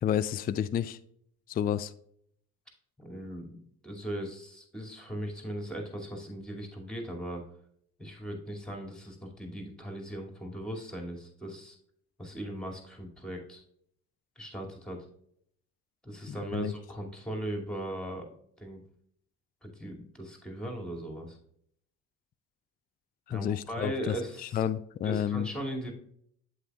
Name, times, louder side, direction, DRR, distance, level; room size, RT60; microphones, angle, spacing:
voice 1, 0.0-1.0 1.5-1.9 16.3-16.7 23.3-24.2 24.5-25.5, left 9 dB, 20° left, 13 dB, 0.4 m, -30 dB
voice 2, 3.0-3.6 3.8-7.5 8.0-11.8 12.2-13.6 14.4-15.1 16.0-18.3 18.6-18.8 19.6-21.4 23.3-24.6 25.0-25.9, right 1 dB, ahead, 1 dB, 2.4 m, -38 dB
8.1 x 7.7 x 2.4 m, 0.67 s
hypercardioid pair, 55°, 43 cm